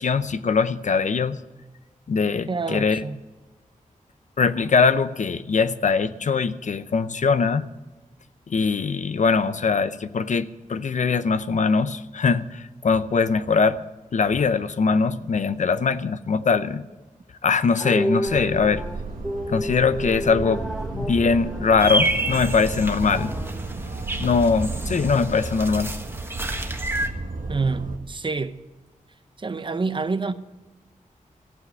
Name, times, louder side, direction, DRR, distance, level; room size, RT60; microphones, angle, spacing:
voice 1, 0.0-1.4 2.1-3.0 4.4-7.7 8.5-13.8 14.1-16.9 17.4-18.8 19.5-20.6 20.9-23.3 24.2-25.9, left 5 dB, 60° left, 0.6 m, -22 dB
voice 2, 2.5-3.2 27.5-28.6 29.4-30.3, right 4 dB, 35° right, 0.7 m, -27 dB
sound 1, 17.8-24.2, equal, 5° left, 1.2 m, -32 dB
sound 2, 18.3-28.0, right 3 dB, 85° right, 1.6 m, -33 dB
sound 3, 21.8-27.1, right 1 dB, 15° right, 1.4 m, -29 dB
14.5 x 7.5 x 9.4 m
wide cardioid pair, 120°, 14 cm